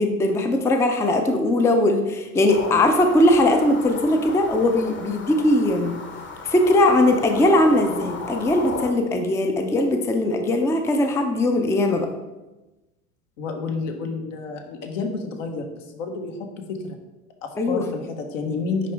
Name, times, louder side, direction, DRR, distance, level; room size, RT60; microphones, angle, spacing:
voice 1, 0.0-5.9 6.4-12.1 17.6-17.8, left 1 dB, 5° left, 5 dB, 0.5 m, -20 dB
sound 1, 2.5-8.9, left 3 dB, 25° left, 1.0 m, -35 dB
voice 2, 13.4-16.4 16.8-17.0 17.4-18.9, left 4 dB, 65° left, 4 dB, 1.3 m, -30 dB
9.8 x 3.7 x 3.4 m, 1.1 s
hypercardioid pair, 85°, 41 cm